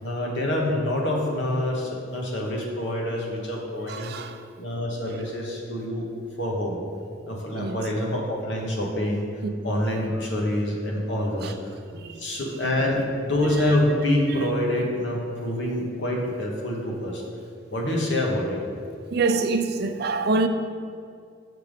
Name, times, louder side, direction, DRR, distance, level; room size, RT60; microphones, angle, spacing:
voice 1, 0.0-4.1 4.6-6.1 6.4-6.8 7.3-9.3 9.6-11.7 12.2-17.2 17.7-18.6, left 1 dB, 75° left, 1.3 m, -26 dB
voice 2, 3.9-4.4 7.6-7.8 11.4-11.5 11.9-12.4 14.4-14.5 18.0-18.1 19.1-20.5, right 3 dB, 60° right, 0.4 m, -26 dB
7.6 x 5.8 x 3.5 m
head